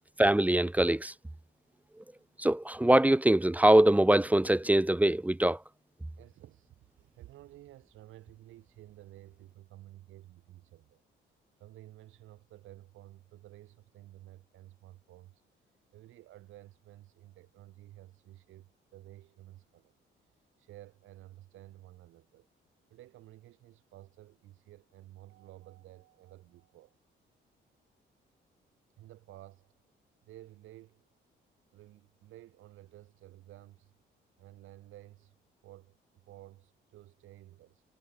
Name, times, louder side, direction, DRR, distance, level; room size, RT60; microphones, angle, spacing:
voice 1, 0.2-1.1 2.4-5.6, right 1 dB, 5° right, 0.5 m, -23 dB
voice 2, 6.2-11.0 11.3-19.9 20.2-22.5 22.9-27.0 29.0-29.7 30.2-31.1 31.7-33.9 34.4-35.4 35.6-37.8, right 15 dB, 85° right, 6.9 m, -53 dB
cardioid pair, 90°, 20 cm